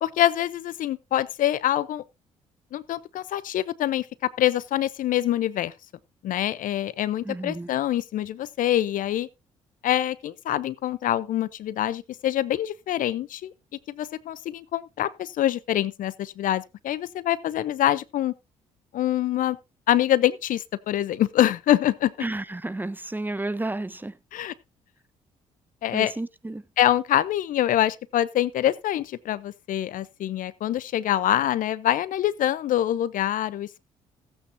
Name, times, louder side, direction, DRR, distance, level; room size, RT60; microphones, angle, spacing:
voice 1, 0.0-2.0 2.7-5.7 6.2-9.3 9.8-13.5 13.9-18.3 18.9-19.6 19.9-22.1 24.3-24.5 25.8-26.1 26.8-33.9, left 12 dB, 60° left, 0.6 m, -25 dB
voice 2, 7.2-7.7 22.2-24.2 25.9-26.6, right 2 dB, 10° right, 0.8 m, -31 dB
16.5 x 8.6 x 2.7 m
hypercardioid pair, 50°, 15 cm